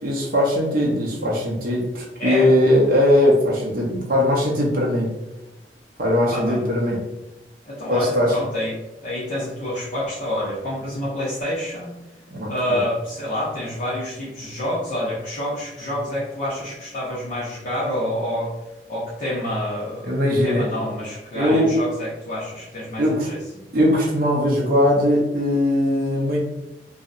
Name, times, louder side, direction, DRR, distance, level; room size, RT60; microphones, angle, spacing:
voice 1, 0.0-5.1 6.0-7.0 7.9-8.4 12.3-12.8 20.0-20.7 21.4-21.7 23.0-23.3 23.7-26.4, left 1 dB, 55° right, -4 dB, 0.5 m, -20 dB
voice 2, 7.6-12.0 12.5-18.5 18.9-23.4, left 1 dB, 45° left, -9 dB, 0.6 m, -28 dB
2.7 x 2.0 x 2.4 m, 0.97 s
head